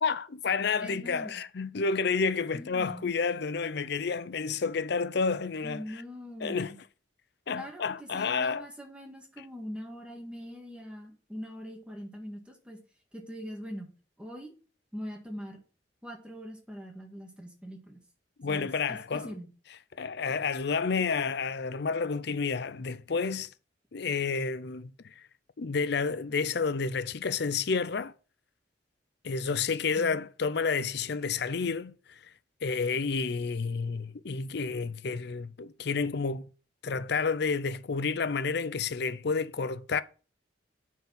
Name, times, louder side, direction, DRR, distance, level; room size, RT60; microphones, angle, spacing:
voice 1, 0.0-6.0 6.4-6.7 7.5-8.7 18.4-19.3 20.0-23.5 23.9-25.2 25.6-28.1 29.2-32.3 32.6-36.5 36.8-40.0, left 5 dB, 60° left, 0.6 m, -30 dB
voice 2, 0.8-1.4 2.5-3.1 5.6-6.8 7.5-12.8 13.1-13.9 14.2-14.5 14.9-15.6 16.0-18.0 18.5-19.5 30.0-30.2, equal, 5° right, 2.1 m, -42 dB
9.3 x 4.7 x 5.4 m
head